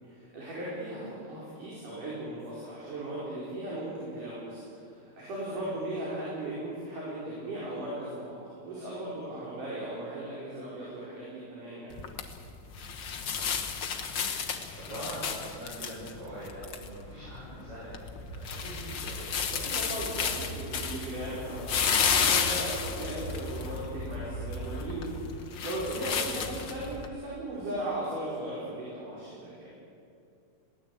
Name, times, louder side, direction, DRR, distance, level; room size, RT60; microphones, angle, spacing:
voice 1, 0.3-11.9 19.5-29.7, right 1 dB, 60° right, -7 dB, 6.5 m, -37 dB
sound 1, 11.9-27.1, left 6 dB, 70° left, 1.1 m, -32 dB
voice 2, 13.0-13.7 14.1-19.3 26.0-26.2, right 1 dB, 40° right, -8 dB, 7.8 m, -44 dB
22.0 x 18.0 x 8.5 m, 2.5 s
omnidirectional pair, 4.3 m